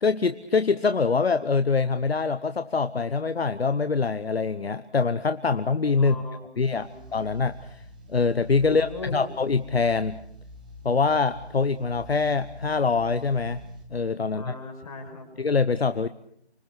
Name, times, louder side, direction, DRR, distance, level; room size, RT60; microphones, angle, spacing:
voice 1, 0.0-6.2 6.6-7.8 8.1-10.2 10.8-13.6 13.9-14.5 15.4-16.1, left 4 dB, 65° left, 11 dB, 1.1 m, -24 dB
voice 2, 6.0-7.0 8.6-9.2 14.2-15.3, left 3 dB, 35° left, 4 dB, 5.1 m, -40 dB
sound 1, 6.6-13.9, right 2 dB, 10° right, 0.9 m, -46 dB
25.5 x 24.0 x 6.2 m, 0.67 s
figure-of-eight pair, 165°, 32 cm